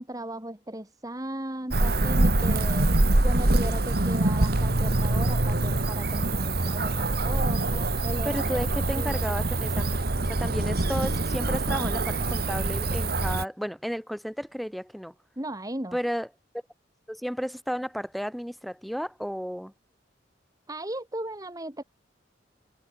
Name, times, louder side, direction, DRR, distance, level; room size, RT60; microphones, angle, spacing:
voice 1, 0.0-2.9 3.2-9.2 15.4-16.0 20.7-21.8, right 1 dB, 20° right, 2.1 m, -37 dB
Cricket / Motor vehicle (road), 1.7-13.4, right 2 dB, 55° right, 1.6 m, -25 dB
voice 2, 8.2-15.1 15.9-16.3 17.1-19.7, equal, ahead, 6.5 m, -33 dB
head